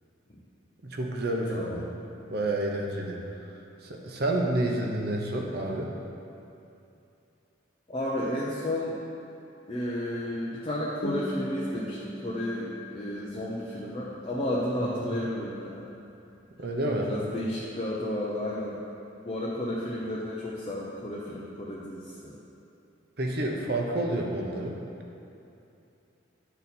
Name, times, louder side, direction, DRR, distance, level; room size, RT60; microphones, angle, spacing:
voice 1, 0.8-1.9 2.3-3.2 3.8-5.9 14.8-15.1 16.6-17.1 23.2-24.8, right 1 dB, 50° right, 0 dB, 0.8 m, -29 dB
voice 2, 1.5-1.8 7.9-9.0 9.7-15.9 17.0-18.8 19.2-22.4, left 1 dB, 30° left, -6 dB, 0.6 m, -32 dB
sound 1, 11.0-16.0, equal, 55° left, 1.3 m, -40 dB
10.0 x 4.1 x 4.2 m, 2.7 s
head